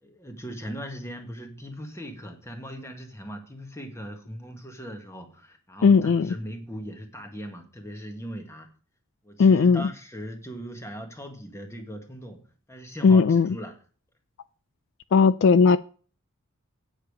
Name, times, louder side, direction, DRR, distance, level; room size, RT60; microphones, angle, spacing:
voice 1, 0.0-8.7 9.2-12.4 12.7-13.8, equal, 15° left, 5 dB, 1.6 m, -39 dB
voice 2, 5.8-6.3 9.4-9.9 13.0-13.6 15.1-15.8, left 5 dB, 60° left, 15 dB, 0.3 m, -17 dB
8.7 x 7.4 x 4.8 m, 0.39 s
head